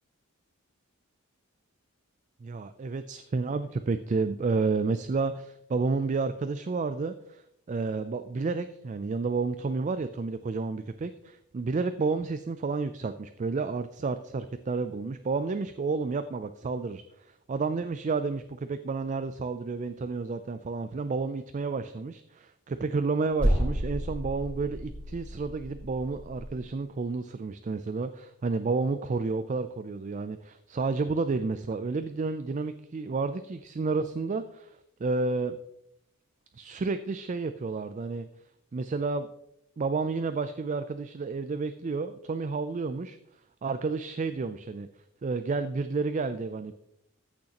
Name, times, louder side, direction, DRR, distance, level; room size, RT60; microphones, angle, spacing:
voice 1, 2.4-35.6 36.5-38.3 38.7-39.3 39.8-44.9 45.2-46.7, right 4 dB, 35° right, 11 dB, 0.3 m, -31 dB
sound 1, 23.4-26.5, equal, 5° left, 4.0 m, -31 dB
14.0 x 6.4 x 2.9 m, 0.78 s
head